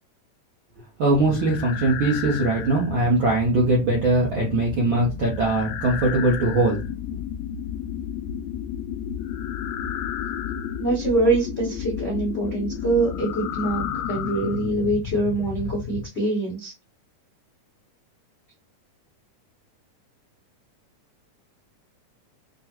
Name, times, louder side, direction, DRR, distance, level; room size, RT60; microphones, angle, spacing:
voice 1, 1.0-6.8, right 2 dB, 70° right, -3 dB, 1.2 m, -21 dB
sound 1, 1.2-16.1, left 8 dB, 85° left, 1.5 m, -32 dB
voice 2, 10.8-16.7, right 2 dB, 65° left, -5 dB, 0.6 m, -24 dB
6.0 x 2.2 x 3.0 m, 0.28 s
omnidirectional pair, 3.7 m